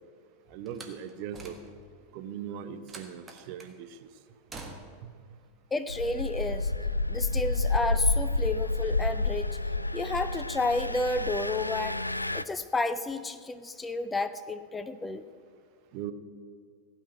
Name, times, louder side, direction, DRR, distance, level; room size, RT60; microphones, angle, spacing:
voice 1, 0.5-1.5 2.1-3.9 5.0-5.1 15.9-16.1, right 9 dB, 45° right, 9 dB, 0.9 m, -39 dB
Slam, 0.7-2.0 2.9-3.8 4.5-5.1, right 3 dB, 20° right, 1.6 m, -46 dB
voice 2, 5.7-6.7 7.1-9.5 9.9-12.0 12.3-15.3, left 2 dB, 10° left, 12 dB, 0.5 m, -31 dB
Engine, 5.9-12.4, left 2 dB, 85° left, 0.3 m, -29 dB
16.0 x 5.9 x 9.4 m, 2.2 s
figure-of-eight pair, 90°, 0 cm